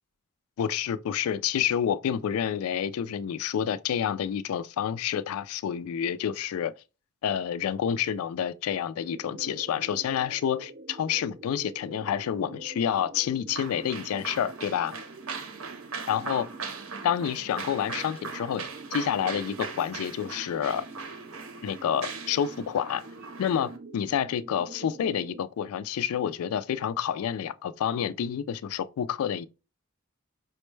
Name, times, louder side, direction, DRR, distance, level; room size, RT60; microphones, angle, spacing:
voice 1, 0.6-6.7 7.2-15.0 16.1-16.5 17.0-18.6 18.9-20.8 21.6-23.0 23.4-29.5, left 9 dB, 80° left, 0.3 m, -29 dB
sound 1, 9.0-25.4, right 3 dB, 40° right, 0.3 m, -46 dB
sound 2, 13.5-23.8, right 5 dB, 75° right, 0.7 m, -40 dB
5.1 x 2.1 x 3.1 m
head